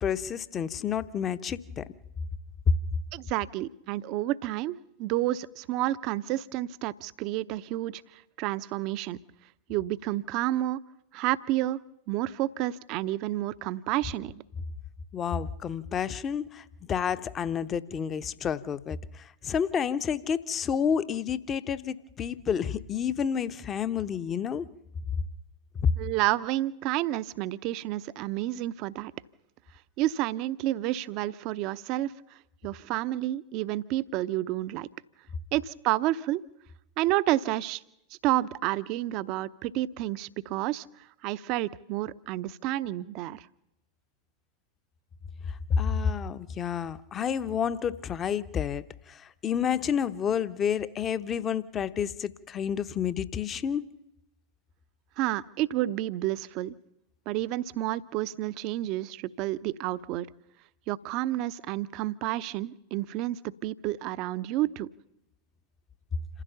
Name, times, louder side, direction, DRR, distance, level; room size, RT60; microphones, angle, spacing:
voice 1, 0.0-1.8 15.1-19.0 19.4-24.6 45.7-53.9, left 7 dB, 25° left, 0.9 m, -30 dB
voice 2, 3.1-9.2 9.7-10.8 11.1-11.8 12.1-14.4 26.0-29.1 30.0-32.1 32.6-34.9 35.5-36.4 37.0-37.8 38.2-40.9 41.2-43.5 55.2-56.7 57.3-60.3 60.9-64.9, right 15 dB, 40° right, 0.7 m, -30 dB
28.0 x 15.0 x 6.9 m
figure-of-eight pair, 90°, 0 cm